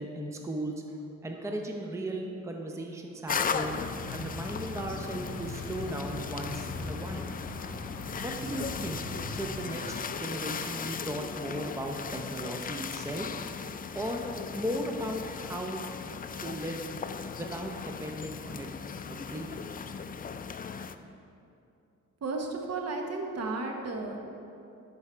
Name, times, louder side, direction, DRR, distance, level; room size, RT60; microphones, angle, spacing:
voice 1, 0.0-3.8 4.1-7.3 8.2-9.0 9.3-13.3 13.9-14.2 14.5-15.8 16.4-16.8 17.4-17.7 18.0-18.7 19.1-19.5, right 1 dB, 10° right, 2 dB, 0.6 m, -36 dB
sound 1, 3.3-21.0, left 6 dB, 30° left, 0.3 m, -37 dB
sound 2, 3.6-10.4, left 2 dB, 60° left, 0.9 m, -40 dB
voice 2, 22.2-24.3, right 3 dB, 55° right, 2 dB, 1.1 m, -34 dB
11.0 x 4.7 x 4.4 m, 2.6 s
cardioid pair, 80°, 31 cm